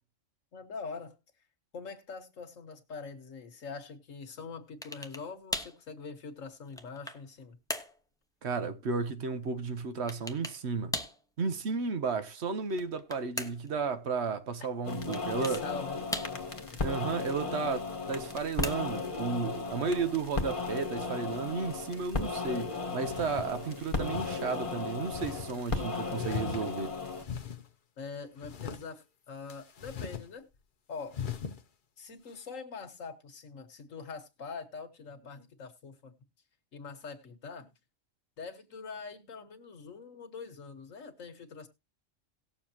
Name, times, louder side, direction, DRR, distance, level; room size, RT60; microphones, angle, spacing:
voice 1, 0.5-1.2 1.7-7.6 15.4-16.1 16.7-17.0 28.0-30.4 30.9-31.2 32.0-36.1 36.7-37.7 38.4-41.7, left 5 dB, 80° left, 1.8 m, -44 dB
sound 1, 4.8-5.3 5.5-5.8 6.4-7.3 7.7-8.0 10.1-10.6 10.9-11.2 12.6-13.7 15.1-15.7 16.1-16.7 18.1-19.1, left 1 dB, 5° left, 0.7 m, -38 dB
voice 2, 8.4-10.9 11.4-15.6 16.8-26.9, right 5 dB, 60° right, 1.1 m, -33 dB
sound 2, 14.8-27.2, left 3 dB, 25° left, 1.2 m, -35 dB
sound 3, 23.0-23.5 24.1-24.4 25.1-25.5 26.1-26.9 27.2-27.7 28.4-28.8 29.5-30.3 30.5-30.6 31.1-31.6, left 8 dB, 45° left, 0.8 m, -39 dB
18.5 x 7.1 x 2.8 m
omnidirectional pair, 1.3 m